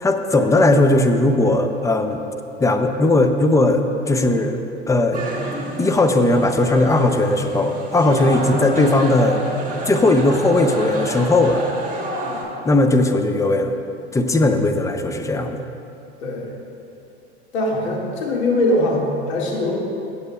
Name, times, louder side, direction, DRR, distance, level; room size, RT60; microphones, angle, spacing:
voice 1, 0.0-2.2 2.6-5.2 5.8-9.4 9.9-11.6 12.7-13.7 14.1-15.6, left 2 dB, 10° left, 7 dB, 0.5 m, -18 dB
sound 1, 5.1-12.4, right 1 dB, 25° right, 1.9 m, -29 dB
voice 2, 17.5-19.7, left 1 dB, 70° left, -2 dB, 1.9 m, -22 dB
14.5 x 8.4 x 2.3 m, 2.8 s
hypercardioid pair, 85°, 34 cm